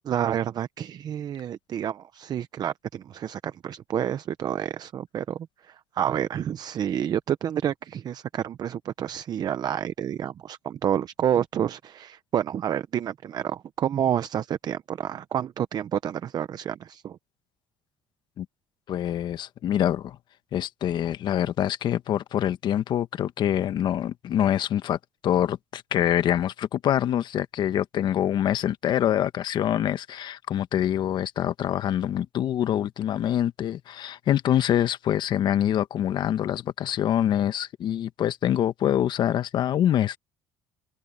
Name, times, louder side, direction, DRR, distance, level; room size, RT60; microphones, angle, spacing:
voice 1, 0.0-17.2, right 9 dB, 45° right, 0.9 m, -29 dB
voice 2, 18.9-20.2 20.5-40.2, left 11 dB, 55° left, 1.4 m, -25 dB
supercardioid pair, 95°, 9 cm